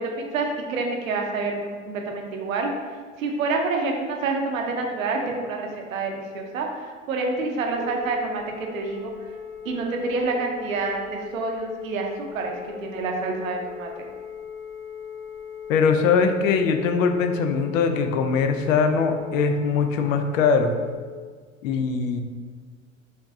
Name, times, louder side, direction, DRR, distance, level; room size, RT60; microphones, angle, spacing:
voice 1, 0.0-2.7 3.2-9.3 9.6-12.6 12.8-14.1, right 3 dB, 85° right, 2 dB, 0.7 m, -28 dB
Telephone, 7.8-20.9, left 7 dB, 50° right, 0.8 m, -39 dB
voice 2, 15.7-20.7 21.6-22.2, left 5 dB, 75° left, 7 dB, 0.5 m, -21 dB
4.8 x 3.0 x 2.7 m, 1.6 s
hypercardioid pair, 70°, 39 cm